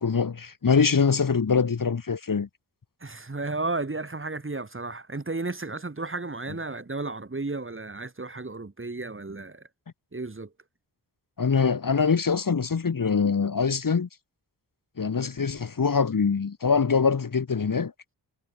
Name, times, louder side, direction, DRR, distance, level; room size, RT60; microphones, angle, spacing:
voice 1, 0.0-2.5 11.4-14.1 15.0-17.9, left 5 dB, 50° left, 1.8 m, -23 dB
voice 2, 3.0-9.6 10.1-10.5, right 3 dB, 30° right, 3.5 m, -33 dB
wide cardioid pair, 90°, 41 cm